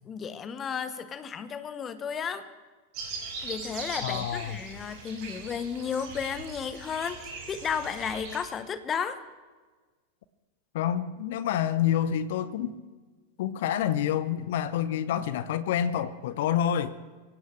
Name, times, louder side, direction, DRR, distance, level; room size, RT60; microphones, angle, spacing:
voice 1, 0.0-2.5 3.4-7.2 7.5-9.2, left 7 dB, 25° left, 12 dB, 1.1 m, -33 dB
sound 1, 2.9-8.4, right 4 dB, 45° right, 5.6 m, -40 dB
voice 2, 4.0-4.6 10.7-12.7 13.4-17.0, left 10 dB, 55° left, 16 dB, 0.8 m, -28 dB
23.5 x 17.0 x 3.4 m, 1.4 s
figure-of-eight pair, 90°, 0 cm